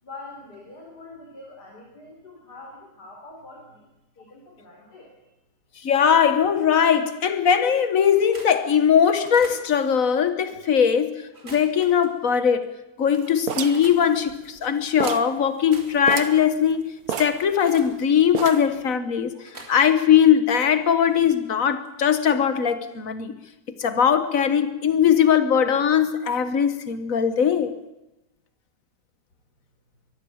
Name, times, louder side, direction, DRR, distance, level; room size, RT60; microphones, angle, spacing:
voice 1, 0.0-3.9 4.2-5.3, left 2 dB, 85° left, -1 dB, 4.6 m, -44 dB
voice 2, 5.8-12.6 13.0-16.9 17.2-19.3 19.7-23.3 23.8-27.7, left 8 dB, 55° left, 11 dB, 1.7 m, -20 dB
sound 1, 8.1-8.6 9.1-9.6 11.2-12.1 12.6-12.7 13.1-14.0 15.5-16.6 17.0-17.9 19.3-20.2 20.4-22.1 22.4-22.6 22.9-23.0, right 2 dB, 40° right, 3.1 m, -46 dB
sound 2, 13.5-14.7 15.0-15.4 15.7-15.8 16.0-16.5 17.1-17.9 18.3-18.8, right 8 dB, 65° right, 1.5 m, -30 dB
22.5 x 14.5 x 8.8 m, 0.97 s
omnidirectional pair, 1.7 m